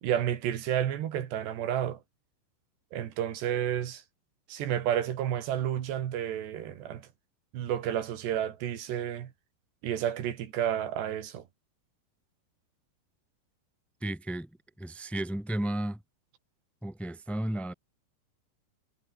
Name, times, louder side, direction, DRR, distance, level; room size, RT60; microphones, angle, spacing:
voice 1, 0.0-2.0 2.9-4.0 4.5-7.1 7.5-9.3 9.8-11.4, right 10 dB, 75° right, 4.2 m, -31 dB
voice 2, 14.0-14.5 14.8-16.0 16.8-17.7, right 1 dB, ahead, 2.6 m, -33 dB
omnidirectional pair, 5.0 m